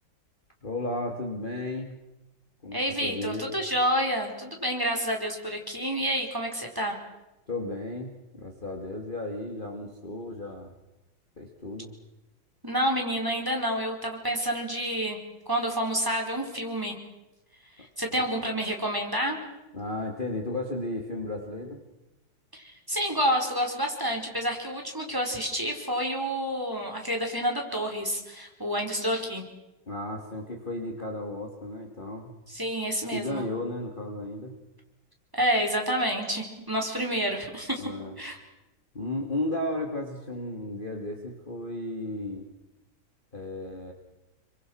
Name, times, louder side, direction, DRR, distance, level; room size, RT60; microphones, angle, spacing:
voice 1, 0.6-2.0 2.6-3.6 7.5-10.7 11.4-11.9 17.8-17.9 19.7-21.8 29.9-32.3 33.1-34.6 37.8-38.2 38.9-42.5 43.3-43.9, left 1 dB, 25° left, 1 dB, 2.5 m, -34 dB
voice 2, 2.7-7.0 12.6-15.2 15.5-17.0 17.8-19.4 22.5-29.4 32.5-33.4 35.3-37.8 38.2-38.4, equal, 10° right, 2 dB, 4.6 m, -29 dB
28.5 x 25.0 x 6.4 m, 0.99 s
omnidirectional pair, 2.2 m